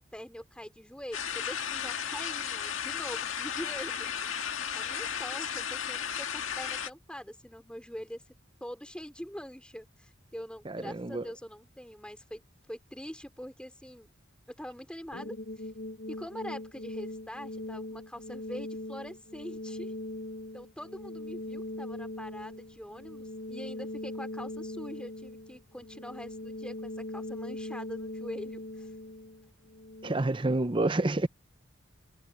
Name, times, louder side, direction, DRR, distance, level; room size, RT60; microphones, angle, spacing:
voice 1, 0.0-4.3 4.7-8.2 8.6-14.1 14.5-15.7 16.1-20.0 20.5-28.9, equal, 5° left, 3.5 m, -44 dB
sound 1, 1.1-6.9, left 8 dB, 85° left, 1.8 m, -34 dB
voice 2, 10.7-11.2 30.0-31.3, right 2 dB, 25° right, 0.7 m, -28 dB
sound 2, 15.1-30.1, left 1 dB, 70° left, 1.6 m, -40 dB
head